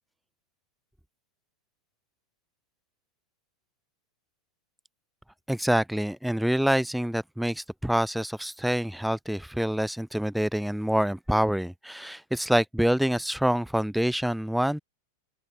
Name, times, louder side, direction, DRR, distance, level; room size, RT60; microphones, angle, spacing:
voice 1, 5.5-14.8, equal, ahead, 6.3 m, -26 dB
open air
figure-of-eight pair, 90°, 0 cm